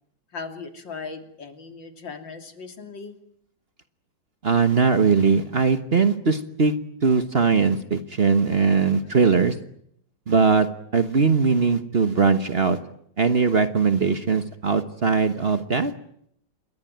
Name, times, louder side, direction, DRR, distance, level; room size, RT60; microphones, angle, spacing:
voice 1, 0.3-3.2 9.0-9.2, left 4 dB, 85° left, 6 dB, 3.7 m, -38 dB
voice 2, 4.4-6.7 7.0-9.5 10.3-10.7 10.9-12.8 13.2-15.9, right 5 dB, 35° right, 10 dB, 1.3 m, -20 dB
28.0 x 22.0 x 9.2 m, 0.72 s
omnidirectional pair, 2.0 m